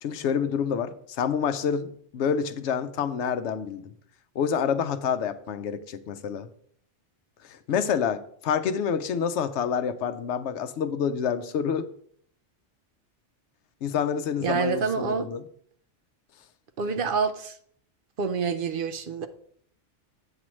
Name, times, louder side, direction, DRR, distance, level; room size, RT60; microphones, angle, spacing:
voice 1, 0.0-3.9 4.4-6.5 7.5-11.9 13.8-15.4, left 7 dB, 75° left, 12 dB, 0.9 m, -28 dB
voice 2, 14.4-15.3 16.8-17.6 18.2-19.3, right 5 dB, 55° right, 9 dB, 0.7 m, -27 dB
8.4 x 7.3 x 3.1 m, 0.63 s
omnidirectional pair, 1.2 m